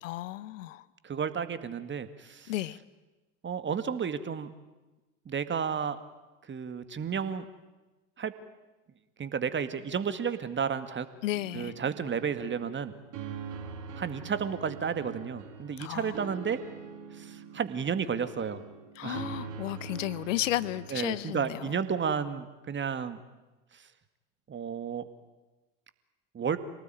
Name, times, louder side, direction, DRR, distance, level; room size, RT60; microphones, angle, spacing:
voice 1, 0.0-0.8 2.5-2.8 11.2-11.7 15.8-16.1 19.0-21.6, left 15 dB, 75° left, 18 dB, 1.0 m, -33 dB
voice 2, 1.0-2.5 3.4-4.5 5.3-6.0 6.5-7.5 8.2-8.3 9.2-11.1 11.5-12.9 14.0-16.6 17.1-18.6 19.0-19.3 20.9-23.2 23.7-23.8 24.5-25.1 26.3-26.6, right 7 dB, 30° right, 11 dB, 2.0 m, -32 dB
sound 1, 11.3-20.9, right 6 dB, 50° right, 4.9 m, -43 dB
27.5 x 18.5 x 9.3 m, 1.1 s
hypercardioid pair, 75°, 38 cm